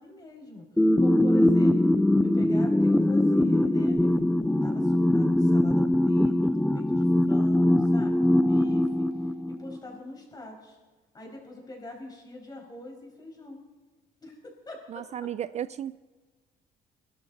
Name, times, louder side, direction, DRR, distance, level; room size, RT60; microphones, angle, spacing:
voice 1, 0.0-10.8 11.1-13.6 14.2-15.0, left 1 dB, 25° left, 1 dB, 5.6 m, -44 dB
sound 1, 0.8-9.8, left 1 dB, 5° left, 0.6 m, -22 dB
voice 2, 14.9-16.0, right 10 dB, 40° right, 15 dB, 0.4 m, -34 dB
23.0 x 12.5 x 4.1 m, 1.3 s
cardioid pair, 110°, 17 cm